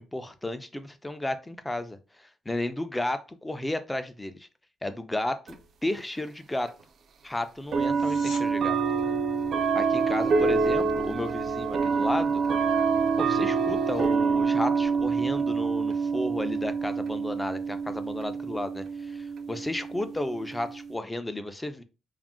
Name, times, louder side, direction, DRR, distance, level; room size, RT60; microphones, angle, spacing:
voice 1, 0.0-4.5 4.8-6.7 7.2-8.8 9.7-12.4 13.2-21.8, left 1 dB, 10° left, 9 dB, 0.4 m, -33 dB
sound 1, 5.5-5.6 6.7-6.8 7.7-20.9, right 5 dB, 60° right, 0.4 m, -27 dB
sound 2, 7.8-8.5 19.8-19.9, left 4 dB, 75° left, 0.8 m, -43 dB
2.4 x 2.0 x 3.6 m, 0.32 s
cardioid pair, 90°, 0 cm